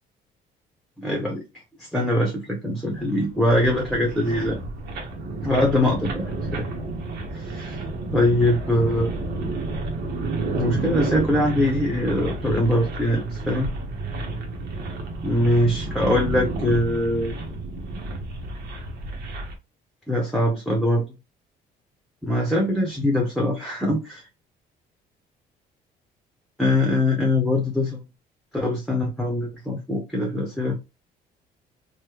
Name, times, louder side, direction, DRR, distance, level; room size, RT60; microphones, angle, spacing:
voice 1, 1.0-1.4 1.9-4.6 5.4-6.7 7.3-7.8 8.1-9.1 10.5-13.7 15.2-17.4 20.1-21.0 22.2-24.2 26.6-28.0 28.5-30.8, left 1 dB, ahead, 0.8 m, -22 dB
sound 1, 2.9-19.6, right 2 dB, 70° right, 1.1 m, -31 dB
3.1 x 2.2 x 3.3 m
cardioid pair, 110°, 17 cm